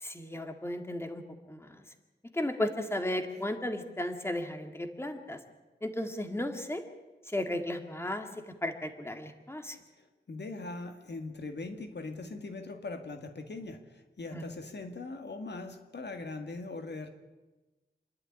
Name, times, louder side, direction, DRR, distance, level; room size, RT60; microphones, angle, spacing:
voice 1, 0.0-1.8 2.3-5.4 5.8-6.8 7.3-9.8 14.3-14.4, left 1 dB, 15° left, 6 dB, 2.0 m, -35 dB
voice 2, 9.9-17.1, left 3 dB, 75° left, 6 dB, 2.0 m, -41 dB
27.0 x 11.5 x 9.9 m, 1.2 s
wide cardioid pair, 95°, 18 cm